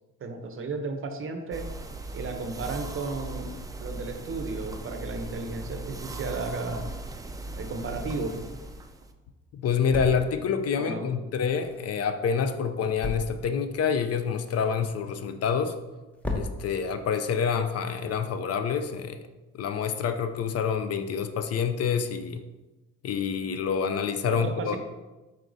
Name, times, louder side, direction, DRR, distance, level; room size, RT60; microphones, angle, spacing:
voice 1, 0.2-1.7 2.1-3.5 3.8-6.9 7.6-8.4 10.8-11.1 24.3-24.8, right 3 dB, 45° right, 6 dB, 0.7 m, -34 dB
sound 1, 1.5-9.1, right 2 dB, 10° right, 0.3 m, -38 dB
sound 2, 8.3-18.9, left 2 dB, 5° left, 0.7 m, -41 dB
voice 2, 9.5-15.8 16.3-19.2 19.5-22.4 23.0-24.8, left 6 dB, 55° left, 9 dB, 0.4 m, -27 dB
4.6 x 4.3 x 2.6 m, 1.1 s
cardioid pair, 90°, 30 cm